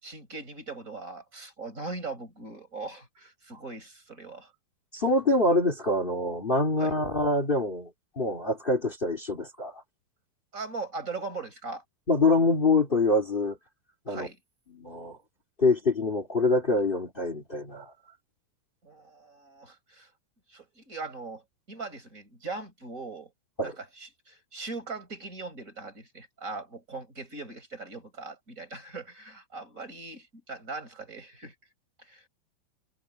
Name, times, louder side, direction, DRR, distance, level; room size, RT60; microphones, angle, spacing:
voice 1, 0.0-4.5 6.8-6.9 10.5-11.8 14.1-14.4 18.8-20.1 20.5-21.4 21.7-23.3 23.6-31.5 32.0-32.2, right 3 dB, 15° right, 5.1 m, -40 dB
voice 2, 4.9-7.9 8.1-9.8 12.1-13.6 14.1-14.3 14.7-15.2 15.6-17.9 23.6-23.7, left 2 dB, 90° left, 0.4 m, -25 dB
omnidirectional pair, 5.3 m